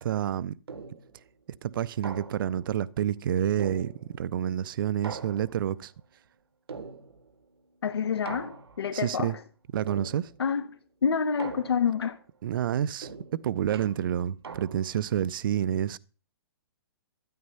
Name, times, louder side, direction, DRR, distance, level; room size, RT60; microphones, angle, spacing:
voice 1, 0.0-0.5 1.6-5.9 8.9-9.4 9.7-10.3 12.4-13.1 13.4-16.0, right 10 dB, 60° right, 0.6 m, -28 dB
sound 1, 0.7-1.2 2.0-2.7 3.6-4.4 5.0-5.8 6.7-7.4 8.3-9.0 9.9-10.5 11.4-12.1 13.0-15.1, right 5 dB, 90° right, 1.6 m, -42 dB
voice 2, 7.8-9.4 10.4-10.6 11.0-12.2, left 6 dB, 85° left, 1.5 m, -27 dB
13.0 x 9.5 x 5.6 m
hypercardioid pair, 150°, 13 cm